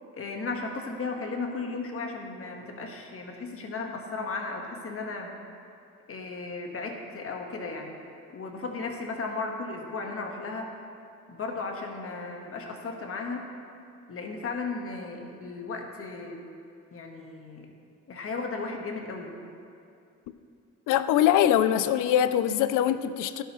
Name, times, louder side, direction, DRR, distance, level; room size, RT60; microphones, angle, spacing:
voice 1, 0.1-5.3 6.1-8.0 8.3-10.7 11.3-13.5 14.1-16.5 16.9-17.7 18.1-19.3, left 3 dB, 50° left, 2 dB, 1.4 m, -35 dB
voice 2, 20.9-23.4, left 11 dB, 90° left, 13 dB, 0.5 m, -23 dB
12.0 x 11.0 x 3.1 m, 2.5 s
cardioid pair, 90°, 30 cm